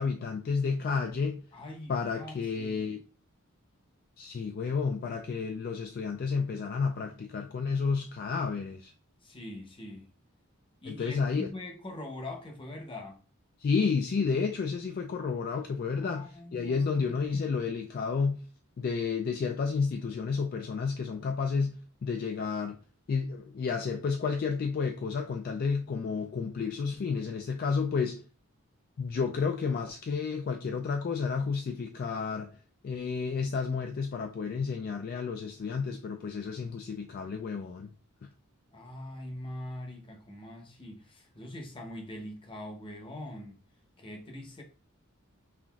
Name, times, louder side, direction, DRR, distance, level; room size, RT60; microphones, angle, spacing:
voice 1, 0.0-1.4 1.9-3.0 4.2-8.9 10.9-11.5 13.6-18.4 18.8-22.8 23.1-28.2 29.0-32.5 32.8-37.9 38.2-38.3, left 5 dB, 45° left, 0.3 m, -31 dB
voice 2, 1.5-2.8 9.2-10.1 10.8-13.2 16.0-17.1 38.7-43.6 44.0-44.6, left 1 dB, 25° left, 0.7 m, -43 dB
5.6 x 2.5 x 2.3 m
head